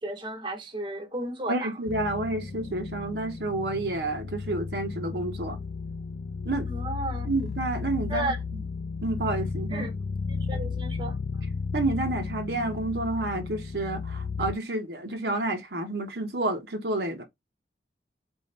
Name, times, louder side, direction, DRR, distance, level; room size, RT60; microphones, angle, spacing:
voice 1, 0.0-1.7 6.7-7.3 8.1-8.4 9.7-9.9 10.3-11.2, right 2 dB, 25° right, 0.9 m, -33 dB
voice 2, 1.5-5.6 6.4-6.7 7.2-8.6 9.0-9.9 11.7-17.2, right 2 dB, 65° right, 0.9 m, -30 dB
sound 1, 1.9-14.5, left 4 dB, 65° left, 0.4 m, -34 dB
4.7 x 2.7 x 3.3 m
head